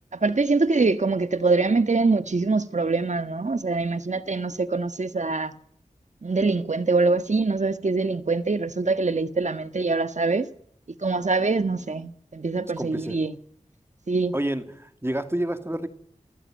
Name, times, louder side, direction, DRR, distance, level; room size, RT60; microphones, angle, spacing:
voice 1, 0.2-5.5 6.2-10.5 11.0-13.3 14.1-14.3, right 3 dB, 65° right, 1.5 m, -24 dB
voice 2, 12.8-13.2 14.3-15.9, right 1 dB, 20° right, 2.5 m, -29 dB
29.0 x 15.0 x 9.0 m
wide cardioid pair, 45°, 13 cm